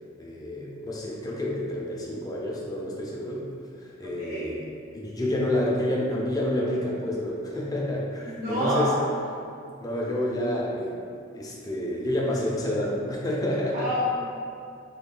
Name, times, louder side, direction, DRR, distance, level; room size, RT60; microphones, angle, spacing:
voice 1, 0.2-3.5 3.8-8.9 9.8-11.1 11.3-13.9, left 1 dB, 20° left, -4 dB, 0.5 m, -29 dB
voice 2, 4.2-4.5 8.2-8.9 13.7-14.1, equal, 45° right, -8 dB, 0.6 m, -27 dB
3.7 x 2.2 x 3.7 m, 2.4 s
head